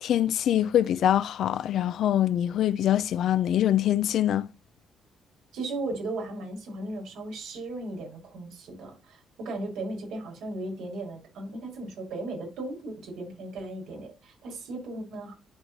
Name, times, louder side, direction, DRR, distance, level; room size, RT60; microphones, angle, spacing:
voice 1, 0.0-4.5, left 11 dB, 60° left, 0.5 m, -24 dB
voice 2, 5.5-15.3, right 2 dB, 80° right, 4.8 m, -36 dB
11.5 x 4.8 x 2.8 m
cardioid pair, 165°, 0 cm